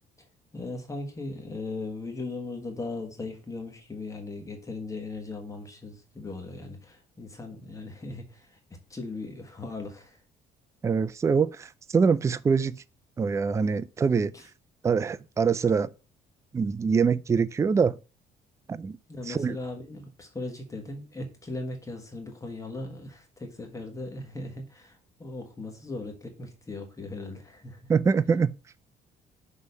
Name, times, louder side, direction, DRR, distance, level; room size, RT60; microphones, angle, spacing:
voice 1, 0.5-8.5 8.9-10.2 14.3-14.4 19.1-27.8, left 2 dB, 20° left, 1.4 m, -38 dB
voice 2, 10.8-12.8 13.2-14.3 14.8-15.9 16.5-17.9 18.7-19.0 19.3-19.6 27.9-28.5, right 5 dB, 15° right, 0.3 m, -24 dB
6.4 x 3.2 x 5.3 m
cardioid pair, 110°, 17 cm